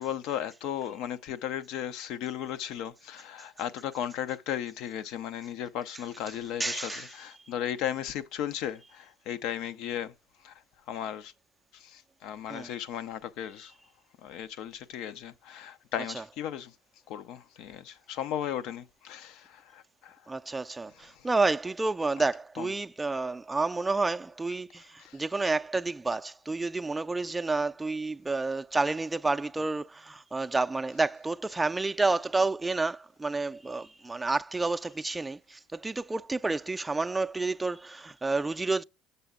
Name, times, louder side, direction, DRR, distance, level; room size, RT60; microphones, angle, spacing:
voice 1, 0.0-10.1 10.4-10.5 10.9-11.3 11.7-13.7 14.2-16.7 17.1-20.2 22.6-22.7 25.0-25.2, left 10 dB, 65° left, 0.6 m, -36 dB
voice 2, 6.3-7.2 12.5-12.7 16.1-16.2 20.3-38.8, right 3 dB, 15° right, 0.4 m, -30 dB
7.0 x 6.8 x 3.7 m
hypercardioid pair, 75°, 0 cm